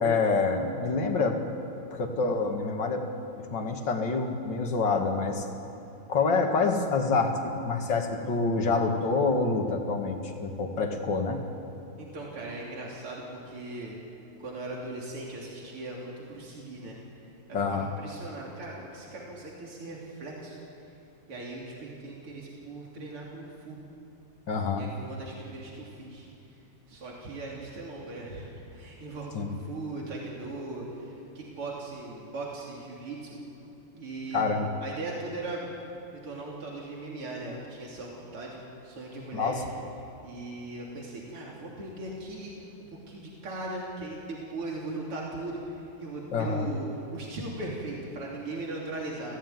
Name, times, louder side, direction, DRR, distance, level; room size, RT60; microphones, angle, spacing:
voice 1, 0.0-1.4 1.9-3.1 3.4-5.5 6.1-11.4 17.5-17.9 24.5-24.8 29.3-29.5 34.3-34.7 39.3-39.6 46.3-46.7, left 4 dB, 55° left, 3 dB, 2.7 m, -27 dB
voice 2, 12.0-14.0 14.4-17.0 17.5-20.9 21.3-23.8 24.7-26.3 26.9-33.4 33.9-34.5 34.8-35.8 36.1-39.7 40.2-49.4, right 2 dB, 80° right, -3 dB, 4.1 m, -39 dB
29.0 x 16.0 x 9.4 m, 2.8 s
omnidirectional pair, 2.4 m